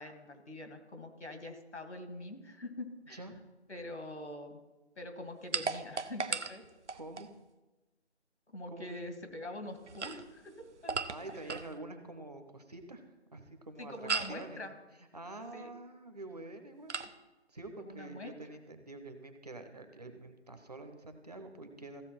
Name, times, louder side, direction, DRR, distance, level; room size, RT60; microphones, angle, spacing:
voice 1, 0.0-3.2 3.7-4.6 5.0-6.6 8.5-11.0 11.2-11.5 13.8-14.7 15.5-15.7 17.8-18.3, left 1 dB, 75° left, 6 dB, 2.0 m, -44 dB
voice 2, 3.1-3.4 6.9-7.3 8.7-9.1 11.1-13.0 13.3-14.6 15.1-17.0 17.5-22.0, right 2 dB, 35° right, 6 dB, 0.9 m, -47 dB
sound 1, 5.5-7.3 9.8-11.7 14.1-14.5 16.9-17.2, right 5 dB, 85° right, 0.8 m, -37 dB
15.0 x 7.0 x 4.3 m, 1.1 s
figure-of-eight pair, 165°, 34 cm